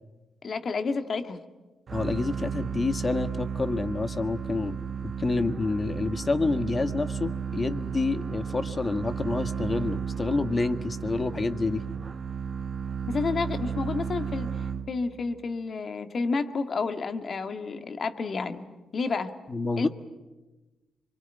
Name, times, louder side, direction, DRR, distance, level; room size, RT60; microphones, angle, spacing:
voice 1, 0.4-1.4 13.0-18.7 18.9-19.3 19.8-19.9, left 4 dB, 55° left, 8 dB, 2.0 m, -30 dB
voice 2, 1.9-4.8 5.2-11.8 19.5-19.9, left 3 dB, 35° left, 9 dB, 1.6 m, -28 dB
sound 1, 1.9-15.3, right 6 dB, 50° right, 1.4 m, -34 dB
24.5 x 23.5 x 9.2 m, 1.2 s
cardioid pair, 65°, 0 cm